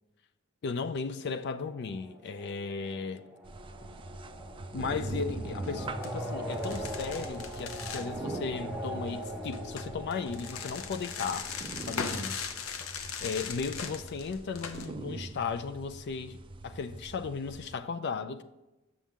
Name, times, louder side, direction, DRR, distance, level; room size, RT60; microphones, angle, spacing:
voice 1, 0.6-3.2 4.7-11.5 11.9-12.4 13.2-16.4 16.6-18.4, left 5 dB, 55° left, 0.4 m, -36 dB
sound 1, 1.4-12.2, equal, 10° right, 0.9 m, -41 dB
sound 2, 3.4-17.8, right 2 dB, 25° right, 0.3 m, -43 dB
sound 3, 5.5-5.7 6.0-6.1 6.5-8.1 9.5-14.9, left 6 dB, 90° left, 0.7 m, -39 dB
7.1 x 6.3 x 3.6 m
head